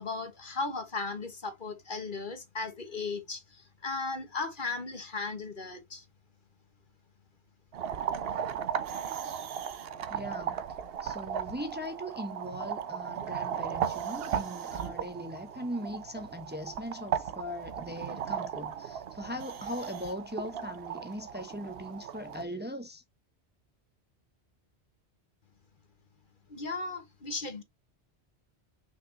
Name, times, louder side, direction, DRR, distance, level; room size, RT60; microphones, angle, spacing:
voice 1, 0.0-6.0 26.5-27.6, left 3 dB, 50° left, 1.5 m, -36 dB
sound 1, 7.7-22.4, right 8 dB, 65° right, 0.9 m, -36 dB
voice 2, 10.1-10.6 11.0-23.0, equal, 10° right, 1.0 m, -40 dB
6.1 x 5.9 x 2.8 m
omnidirectional pair, 1.1 m